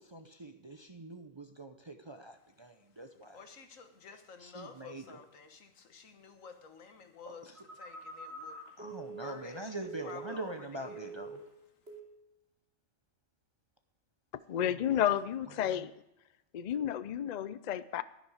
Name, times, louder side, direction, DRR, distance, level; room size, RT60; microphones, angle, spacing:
voice 1, 0.0-3.4 4.4-5.2 7.2-7.6 8.8-11.4 14.6-14.8 15.6-15.9, right 2 dB, 30° right, 6 dB, 0.5 m, -44 dB
voice 2, 3.3-11.1, left 5 dB, 90° left, 7 dB, 1.6 m, -52 dB
Telephone, 7.5-10.6 10.8-11.5 11.9-12.2, right 3 dB, 55° right, 3.2 m, -46 dB
voice 3, 14.5-15.9 16.5-18.0, left 10 dB, 65° left, 15 dB, 0.4 m, -31 dB
11.5 x 10.5 x 4.9 m, 0.88 s
omnidirectional pair, 1.3 m